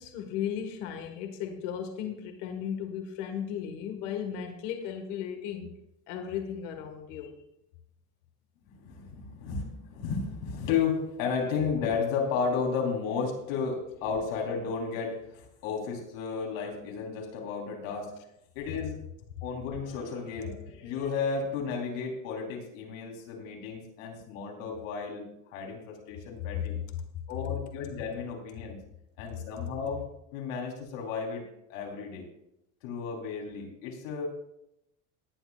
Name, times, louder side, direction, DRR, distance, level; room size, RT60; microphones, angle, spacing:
voice 1, 0.0-5.7 6.1-7.3 26.5-26.6, left 8 dB, 65° left, 5 dB, 2.0 m, -35 dB
voice 2, 8.6-18.1 18.5-19.0 19.4-26.8 27.3-28.8 29.2-30.1 30.3-31.4 31.7-32.2 32.8-34.3, left 5 dB, 90° left, 0 dB, 4.1 m, -33 dB
18.5 x 11.0 x 2.5 m, 0.81 s
cardioid pair, 180°, 38 cm